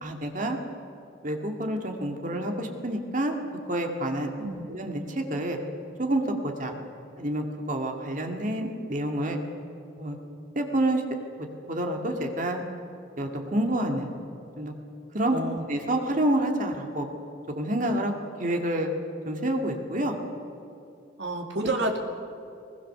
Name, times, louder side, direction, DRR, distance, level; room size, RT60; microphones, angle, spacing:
voice 1, 0.0-0.6 1.2-3.4 3.7-4.3 4.7-5.6 6.0-6.7 7.2-9.4 10.0-10.2 10.6-11.0 11.4-12.6 13.2-14.1 14.6-14.7 15.1-15.4 15.7-17.1 17.5-18.1 18.4-18.9 19.3-20.2 21.6-21.7, right 1 dB, 45° right, 3 dB, 2.2 m, -28 dB
voice 2, 15.3-15.6 21.2-22.0, right 2 dB, 65° right, 2 dB, 2.6 m, -29 dB
21.5 x 21.0 x 6.8 m, 2.6 s
head